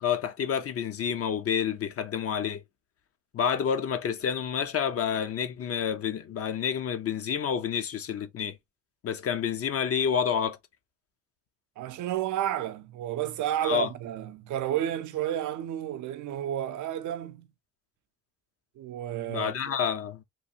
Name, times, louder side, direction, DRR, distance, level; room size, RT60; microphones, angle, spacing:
voice 1, 0.0-2.6 3.3-8.6 9.0-10.6 13.6-13.9 19.3-20.2, left 8 dB, 50° left, 0.6 m, -29 dB
voice 2, 11.8-17.5 18.8-19.8, right 11 dB, 75° right, 0.6 m, -31 dB
3.1 x 2.4 x 2.7 m
cardioid pair, 90°, 30 cm